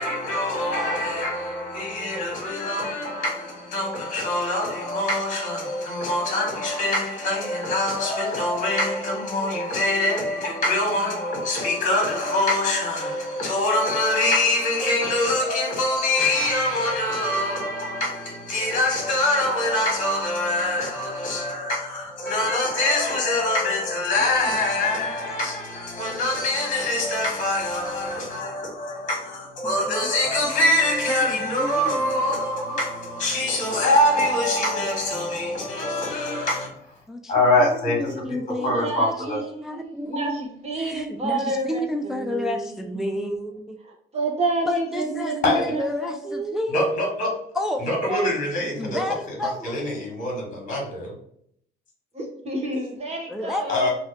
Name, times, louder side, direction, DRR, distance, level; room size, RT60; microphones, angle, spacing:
voice 1, 0.0-36.7 37.3-38.0 38.6-39.4 45.4-45.6 46.7-47.3 47.8-49.0 49.4-51.2 53.7-53.9, left 1 dB, 40° left, 1.5 m, -24 dB
voice 2, 30.4-30.8 31.1-32.2 33.6-33.7 34.3-34.4 35.1-35.3 37.1-40.4 40.8-43.8 44.7-47.1 47.5-47.9 48.8-49.8 53.3-53.9, left 1 dB, ahead, 0.3 m, -31 dB
voice 3, 38.1-43.2 44.1-47.5 48.1-48.3 48.6-48.7 52.1-53.9, right 2 dB, 30° right, 1.1 m, -30 dB
3.0 x 2.7 x 3.2 m
cardioid pair, 110°, 21 cm